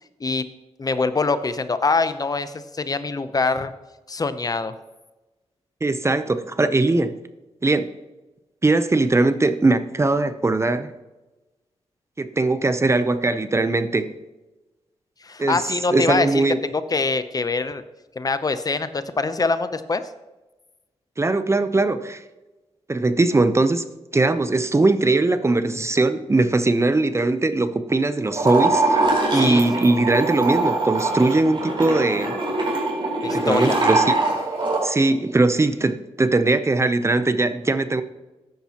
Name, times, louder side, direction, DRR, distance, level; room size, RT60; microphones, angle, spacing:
voice 1, 0.8-3.7 4.1-4.7 15.2-16.4 16.7-17.8 18.2-20.0 29.3-29.9 33.2-33.8, left 3 dB, 35° left, 12 dB, 0.7 m, -24 dB
voice 2, 5.8-7.2 7.6-7.9 8.6-10.9 12.2-14.1 15.4-15.6 15.9-16.6 21.2-22.2 22.9-23.9 24.1-29.1 29.3-32.4 33.3-34.1 34.8-38.0, right 2 dB, 25° right, 11 dB, 0.6 m, -20 dB
sound 1, 28.3-34.8, right 2 dB, 45° right, 4.4 m, -23 dB
14.0 x 10.5 x 2.9 m, 1.1 s
cardioid pair, 85°, 11 cm